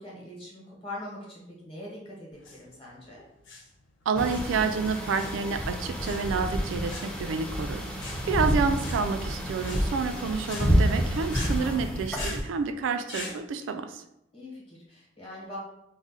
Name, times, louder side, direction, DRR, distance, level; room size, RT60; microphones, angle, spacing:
voice 1, 0.0-3.2 10.7-11.2 14.3-15.6, left 1 dB, 30° left, -4 dB, 1.0 m, -43 dB
sound 1, 2.3-13.4, left 3 dB, 80° left, 0.5 m, -43 dB
voice 2, 4.1-14.0, right 5 dB, 85° right, 9 dB, 0.3 m, -29 dB
sound 2, 4.2-12.4, equal, 5° left, 0.3 m, -29 dB
2.4 x 2.1 x 3.8 m, 0.83 s
head